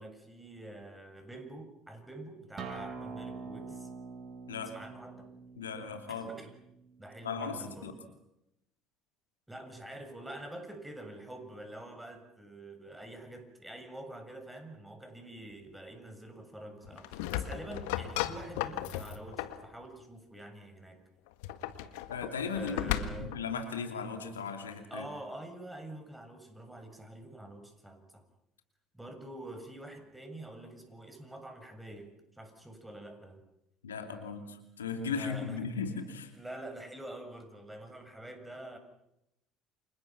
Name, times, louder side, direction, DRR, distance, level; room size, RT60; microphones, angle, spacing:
voice 1, 0.0-3.9 4.6-5.3 6.1-6.5 7.0-7.9 9.5-21.0 22.6-23.4 24.9-28.2 28.9-33.4 35.1-35.7 36.3-38.8, right 1 dB, 5° right, 6 dB, 7.0 m, -46 dB
Acoustic guitar, 2.6-7.8, right 4 dB, 40° right, 7.2 m, -45 dB
voice 2, 5.6-6.3 7.2-7.9 22.1-25.1 33.8-36.3, left 5 dB, 85° left, 5 dB, 2.8 m, -37 dB
sound 1, 16.8-19.6 21.3-23.4, left 12 dB, 70° left, 1.7 m, -36 dB
29.5 x 27.0 x 6.0 m, 0.85 s
hypercardioid pair, 60°, 0 cm